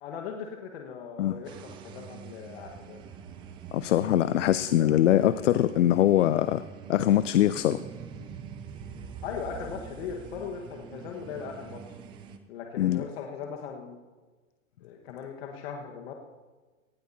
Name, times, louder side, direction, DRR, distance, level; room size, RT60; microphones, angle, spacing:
voice 1, 0.0-3.0 4.9-5.4 9.2-11.8 12.5-14.0 14.8-16.1, left 6 dB, 50° left, 1 dB, 1.6 m, -39 dB
sound 1, 1.4-12.4, right 7 dB, 10° right, 0.4 m, -44 dB
voice 2, 3.7-6.6 6.9-7.8 12.8-13.0, left 12 dB, 65° left, 14 dB, 0.6 m, -22 dB
18.5 x 16.5 x 2.8 m, 1.3 s
hypercardioid pair, 135°, 40 cm